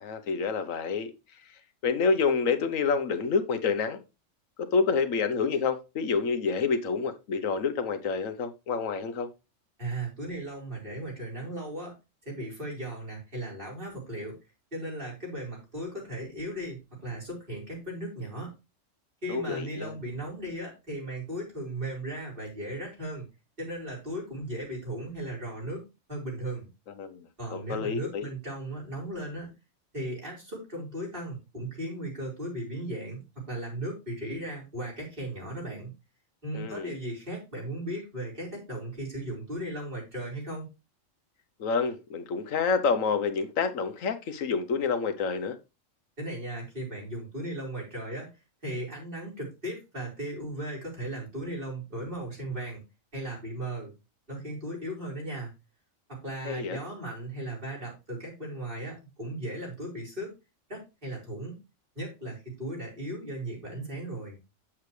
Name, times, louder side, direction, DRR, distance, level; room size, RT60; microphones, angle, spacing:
voice 1, 0.0-1.1 1.8-4.0 4.7-9.3 19.3-19.9 27.0-27.2 27.5-28.2 36.5-36.9 41.6-45.6 56.4-56.8, left 5 dB, 90° left, 1.4 m, -28 dB
voice 2, 9.8-11.9 12.2-14.3 14.7-18.5 19.2-23.2 23.6-26.7 27.4-29.5 29.9-35.9 36.4-40.7 46.2-48.3 48.6-52.8 53.1-53.9 54.3-55.5 56.1-60.3 60.7-61.5 61.9-64.4, right 1 dB, 40° right, 4.8 m, -36 dB
8.7 x 7.2 x 3.2 m
omnidirectional pair, 1.3 m